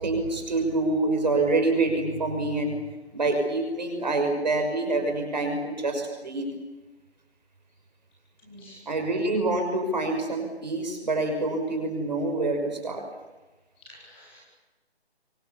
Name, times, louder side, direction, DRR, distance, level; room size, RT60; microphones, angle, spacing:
voice 1, 0.0-2.8 3.1-6.4 8.9-13.0, right 2 dB, 40° right, 5 dB, 5.8 m, -26 dB
voice 2, 8.4-8.8 13.9-14.4, equal, 10° left, -6 dB, 4.3 m, -49 dB
26.0 x 25.0 x 7.2 m, 1.1 s
figure-of-eight pair, 175°, 33 cm